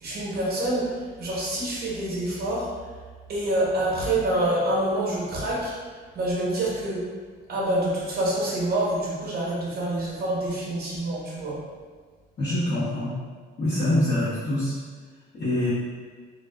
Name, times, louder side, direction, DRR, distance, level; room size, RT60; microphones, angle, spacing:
voice 1, 0.0-2.7 3.3-5.7 6.1-7.1 7.5-11.6, right 1 dB, 50° right, -5 dB, 0.8 m, -26 dB
voice 2, 12.4-13.1 13.6-14.7 15.3-15.7, left 1 dB, 55° left, -13 dB, 0.9 m, -24 dB
2.4 x 2.3 x 2.2 m, 1.5 s
cardioid pair, 90°, 20 cm